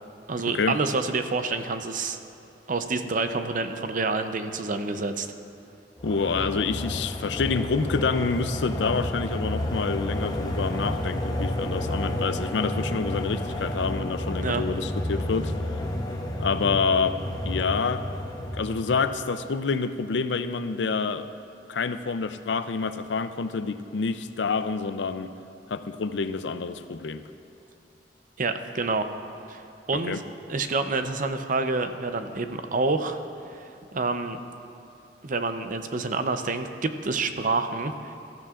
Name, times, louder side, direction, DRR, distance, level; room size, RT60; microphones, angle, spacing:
voice 1, 0.3-2.2 2.7-5.3 14.4-14.6 28.4-29.1 29.5-29.6 29.9-30.2 30.5-33.2 33.5-34.4 35.2-38.1, right 3 dB, 50° right, 8 dB, 0.7 m, -28 dB
voice 2, 6.0-15.6 16.4-18.1 18.5-21.3 21.7-25.3 25.7-27.2 30.1-30.2, left 4 dB, 75° left, 11 dB, 0.5 m, -27 dB
sound 1, 6.0-19.1, left 1 dB, 20° left, 0.9 m, -30 dB
20.5 x 13.5 x 2.5 m, 2.8 s
head